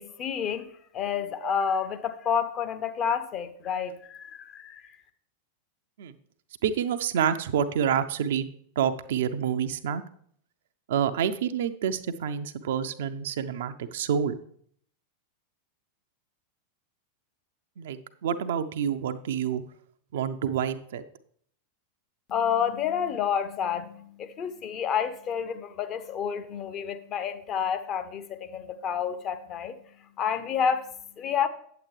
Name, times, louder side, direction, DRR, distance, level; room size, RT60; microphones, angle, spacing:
voice 1, 0.0-5.0 22.3-31.5, left 7 dB, 30° left, 9 dB, 0.7 m, -30 dB
voice 2, 6.6-8.5 8.8-10.0 10.9-14.4 17.8-19.6 20.1-21.0, right 8 dB, 55° right, 10 dB, 0.5 m, -28 dB
8.6 x 7.9 x 3.2 m, 0.62 s
figure-of-eight pair, 90°, 0 cm